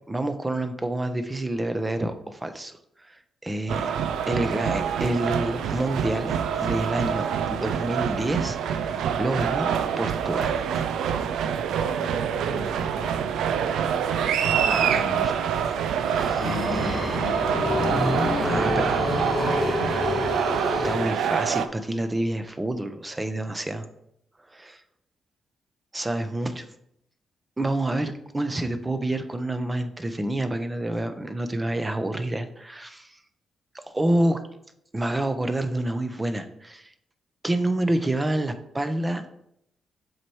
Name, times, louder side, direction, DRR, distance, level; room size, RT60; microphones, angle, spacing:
voice 1, 0.1-2.8 3.0-3.9 4.3-10.6 14.7-15.3 18.4-18.9 20.8-23.8 24.5-24.8 25.9-26.6 27.6-33.2 33.9-34.4 34.9-36.9 37.4-39.3, right 1 dB, 20° right, 0.7 m, -28 dB
sound 1, 3.7-21.7, right 8 dB, 85° right, 0.4 m, -26 dB
voice 2, 12.4-13.3 14.8-15.3 16.2-17.5 18.4-19.1, left 6 dB, 80° left, 0.6 m, -37 dB
sound 2, 15.8-21.7, left 3 dB, 30° left, 0.7 m, -29 dB
7.5 x 3.1 x 4.6 m
supercardioid pair, 60°, 0 cm